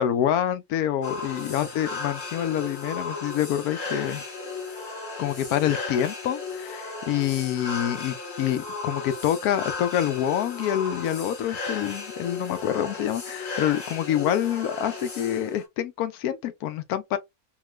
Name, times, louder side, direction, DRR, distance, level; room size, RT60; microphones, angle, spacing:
voice 1, 0.0-4.2 5.2-17.2, left 10 dB, 80° left, 1.1 m, -27 dB
sound 1, 1.0-15.7, left 4 dB, 40° left, 0.9 m, -35 dB
2.8 x 2.4 x 3.0 m
omnidirectional pair, 1.6 m